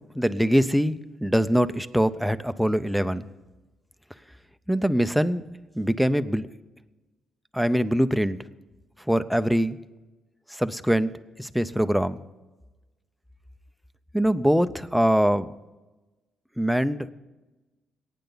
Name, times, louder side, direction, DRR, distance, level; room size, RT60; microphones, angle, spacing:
voice 1, 0.0-3.2 4.7-5.4 5.7-6.5 7.5-8.4 9.1-9.8 10.5-11.1 11.4-12.2 14.1-15.5 16.6-17.1, equal, ahead, 11 dB, 0.6 m, -23 dB
22.0 x 9.3 x 4.0 m, 1.1 s
cardioid pair, 90°, 0 cm